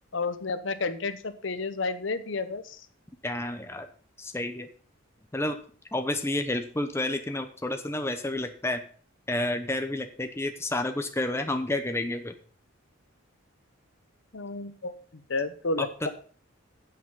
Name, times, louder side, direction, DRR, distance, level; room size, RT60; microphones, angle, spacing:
voice 1, 0.1-2.8 14.3-16.1, left 3 dB, 65° left, 11 dB, 0.9 m, -31 dB
voice 2, 3.2-3.9 4.2-4.7 5.3-5.6 5.9-8.8 9.3-12.3 15.8-15.9, left 1 dB, 10° left, 7 dB, 0.8 m, -30 dB
9.2 x 7.7 x 5.6 m, 0.43 s
head